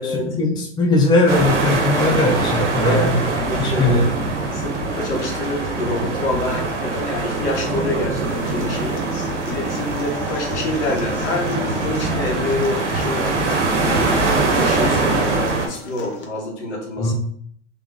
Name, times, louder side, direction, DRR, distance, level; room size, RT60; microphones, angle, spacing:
voice 1, 0.0-3.2 3.6-4.1 17.0-17.1, left 2 dB, 10° left, -1 dB, 0.7 m, -19 dB
sound 1, 1.3-15.7, right 3 dB, 75° right, 1.1 m, -23 dB
voice 2, 2.8-3.2 3.4-3.9 4.5-9.0 9.5-17.1, left 2 dB, 70° left, 0 dB, 1.5 m, -27 dB
Human voice / Acoustic guitar, 8.3-16.2, left 4 dB, 50° left, 1.0 m, -37 dB
3.4 x 3.3 x 3.2 m, 0.64 s
hypercardioid pair, 110°, 36 cm